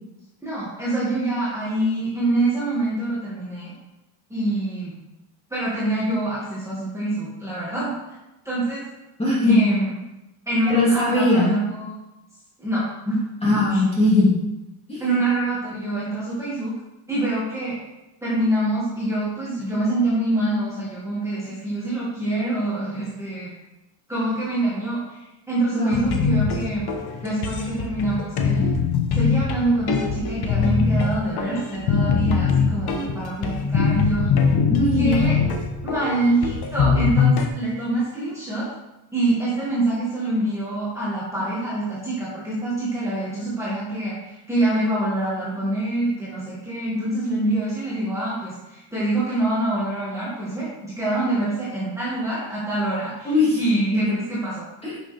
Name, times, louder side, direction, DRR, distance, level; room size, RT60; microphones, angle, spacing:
voice 1, 0.4-3.7 4.3-4.9 5.5-7.9 8.4-8.8 9.5-9.9 10.5-11.9 12.6-13.2 13.7-13.8 15.0-16.7 17.1-17.8 18.2-23.5 24.1-26.9 27.2-28.7 29.1-34.3 34.9-35.4 35.8-38.7 39.1-54.6, right 2 dB, 5° right, -9 dB, 2.0 m, -25 dB
voice 2, 9.2-9.7 10.7-11.5 13.4-14.4 14.9-15.0 25.7-26.1 34.7-36.1 53.2-53.6 53.9-54.1 54.8-55.0, left 2 dB, 10° left, -6 dB, 2.4 m, -20 dB
sound 1, 25.9-37.5, left 6 dB, 50° left, 1.0 m, -22 dB
10.5 x 6.5 x 3.4 m, 0.96 s
cardioid pair, 175°, 50 cm